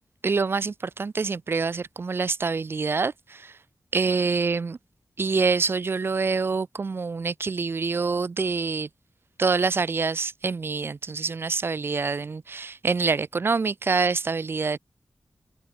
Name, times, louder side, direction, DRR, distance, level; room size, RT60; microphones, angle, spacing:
voice 1, 0.2-3.5 3.9-4.8 5.2-8.9 9.4-14.8, right 4 dB, 55° right, 6.9 m, -26 dB
open air
wide cardioid pair, 125°, 5 cm